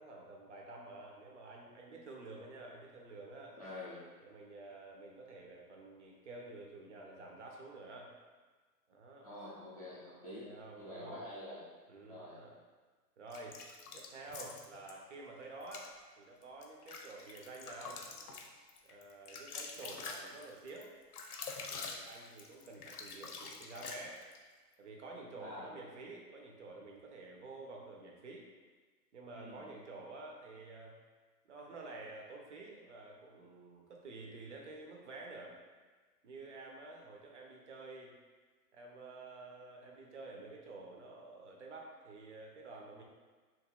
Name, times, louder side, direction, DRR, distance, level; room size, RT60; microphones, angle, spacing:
voice 1, 0.0-3.6 4.2-8.1 8.9-9.3 9.8-10.0 10.4-11.2 11.9-12.6 13.2-13.6 13.9-18.0 18.8-20.9 21.7-24.2 24.8-28.5 29.1-31.0 31.5-35.6 36.2-38.1 38.7-43.0, right 2 dB, 45° right, 0 dB, 0.7 m, -50 dB
voice 2, 3.6-4.0 9.2-10.4 10.8-11.7 12.1-12.4 25.4-25.7 29.3-29.6, left 1 dB, 25° left, -10 dB, 0.4 m, -47 dB
sound 1, 13.3-14.9 15.6-15.9 16.4-24.4, left 4 dB, 65° left, 0.7 m, -46 dB
3.0 x 2.6 x 3.6 m, 1.4 s
hypercardioid pair, 165°, 49 cm